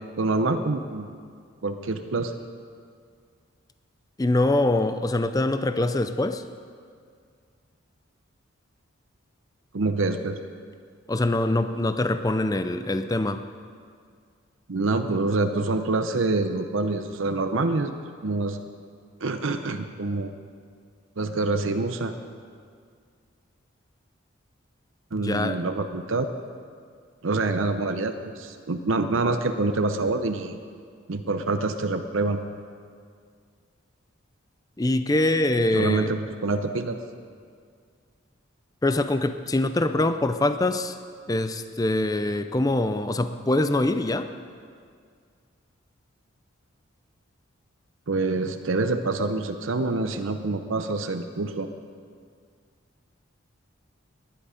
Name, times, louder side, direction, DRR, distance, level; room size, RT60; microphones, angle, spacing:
voice 1, 0.2-1.1 1.6-2.3 9.7-10.4 14.7-17.9 18.2-18.6 19.2-20.3 21.2-22.1 25.1-26.3 27.2-30.6 31.1-32.4 35.7-37.0 48.1-51.7, right 3 dB, 70° right, 7 dB, 0.7 m, -26 dB
voice 2, 4.2-6.4 11.1-13.4 25.2-25.6 34.8-36.1 38.8-41.0 41.3-44.3, left 2 dB, 15° left, 10 dB, 0.5 m, -24 dB
19.5 x 11.0 x 5.0 m, 2.1 s
head